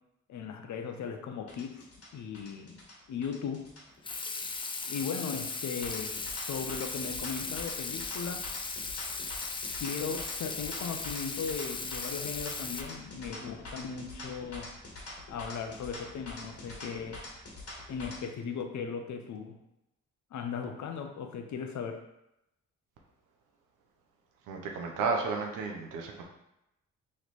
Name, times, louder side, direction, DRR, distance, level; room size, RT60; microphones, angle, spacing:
voice 1, 0.3-1.8 2.1-2.8 3.1-3.6 4.9-6.2 6.5-8.5 9.8-14.7 15.3-17.2 17.9-19.6 20.3-22.0, left 6 dB, 65° left, 5 dB, 0.6 m, -37 dB
sound 1, 1.5-18.2, left 2 dB, 50° left, 1.3 m, -45 dB
Water tap faucet / Sink (filling or washing), 4.0-12.8, left 4 dB, 15° left, 0.3 m, -37 dB
voice 2, 24.5-26.2, right 4 dB, 90° right, 1 dB, 0.7 m, -32 dB
3.2 x 3.0 x 4.1 m, 0.87 s
supercardioid pair, 60°, 31 cm